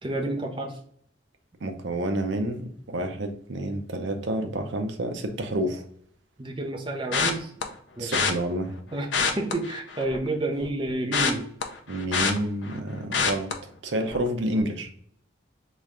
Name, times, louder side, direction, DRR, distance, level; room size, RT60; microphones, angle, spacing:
voice 1, 0.0-0.8 6.4-7.5 8.0-8.2 8.9-11.5, right 2 dB, 25° right, 3 dB, 0.6 m, -30 dB
voice 2, 1.6-5.8 8.0-8.7 11.9-13.5 13.8-14.9, right 1 dB, 70° right, 5 dB, 0.6 m, -29 dB
sound 1, 7.1-7.6 8.1-8.3 9.0-10.3 10.6-12.8 13.1-13.5 14.0-14.3 14.5-14.6, left 5 dB, 70° left, 0.6 m, -26 dB
3.2 x 3.1 x 3.6 m, 0.62 s
head